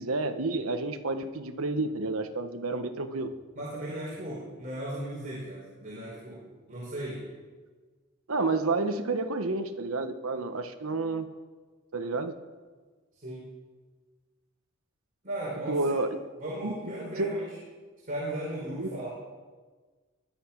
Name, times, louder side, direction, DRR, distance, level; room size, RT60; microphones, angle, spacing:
voice 1, 0.0-3.3 8.3-11.3 11.9-12.3 15.7-16.2 16.6-17.3 18.8-18.9, right 3 dB, 80° right, 7 dB, 1.1 m, -30 dB
voice 2, 3.6-6.4 6.7-7.2 13.1-13.5 15.2-15.9 16.4-17.4 18.1-19.1, right 1 dB, 40° right, -7 dB, 5.1 m, -36 dB
21.0 x 11.0 x 6.0 m, 1.4 s
head